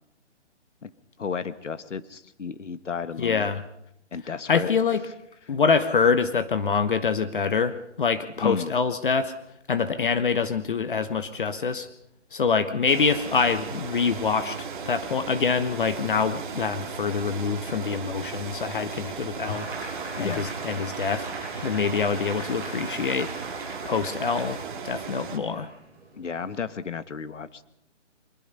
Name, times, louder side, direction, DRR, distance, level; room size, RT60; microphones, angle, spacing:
voice 1, 1.2-3.5 4.1-4.7 5.5-5.6 8.4-8.7 20.2-20.5 26.1-27.6, left 6 dB, 85° left, 12 dB, 1.4 m, -33 dB
voice 2, 3.2-3.6 4.5-5.0 5.5-9.3 9.7-11.9 12.3-19.7 20.2-21.3 21.6-23.3 23.8-25.7, left 5 dB, 45° left, 11 dB, 1.1 m, -25 dB
sound 1, 12.9-25.4, right 6 dB, 45° right, 2.2 m, -37 dB
Applause, 19.4-26.6, right 3 dB, 5° right, 7.9 m, -39 dB
24.5 x 21.5 x 5.5 m, 0.79 s
hypercardioid pair, 165°, 36 cm